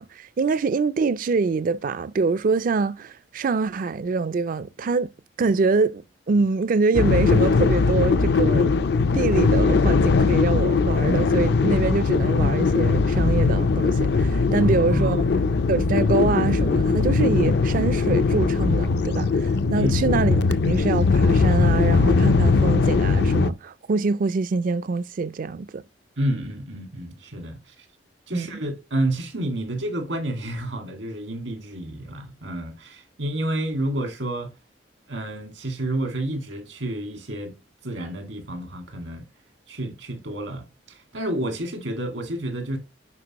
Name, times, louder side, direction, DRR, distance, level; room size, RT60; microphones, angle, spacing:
voice 1, 0.0-5.1 5.4-8.8 9.1-15.2 15.7-25.8 28.3-28.5, right 4 dB, 45° right, 0.4 m, -25 dB
sound 1, 6.9-23.5, left 4 dB, 60° left, 0.4 m, -20 dB
voice 2, 14.8-15.2 19.7-20.0 26.2-27.9 28.3-34.5 35.1-37.5 37.8-39.3 39.7-42.8, right 1 dB, 85° right, 2.0 m, -30 dB
9.6 x 4.7 x 2.9 m
head